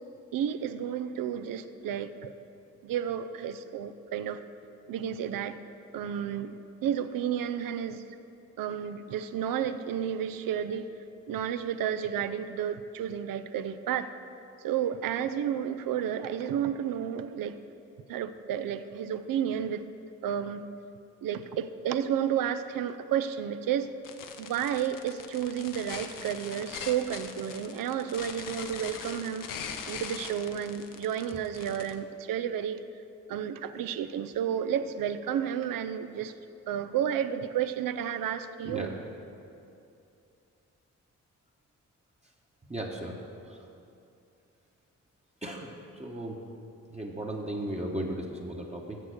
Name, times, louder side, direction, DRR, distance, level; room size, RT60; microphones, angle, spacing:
voice 1, 0.3-2.3 2.8-4.4 4.9-5.6 5.9-8.1 8.6-10.9 11.3-14.1 14.6-17.6 18.1-19.8 20.2-20.6 21.2-23.9 24.4-29.5 29.9-32.8 33.3-36.3 36.7-38.9, right 9 dB, 75° right, 11 dB, 0.5 m, -31 dB
sound 1, 24.0-31.9, left 6 dB, 65° left, 0.7 m, -41 dB
voice 2, 42.7-43.2 43.5-43.6 45.4-46.4 46.9-49.0, right 1 dB, 20° right, -1 dB, 1.0 m, -36 dB
6.9 x 6.6 x 6.4 m, 2.6 s
supercardioid pair, 45°, 34 cm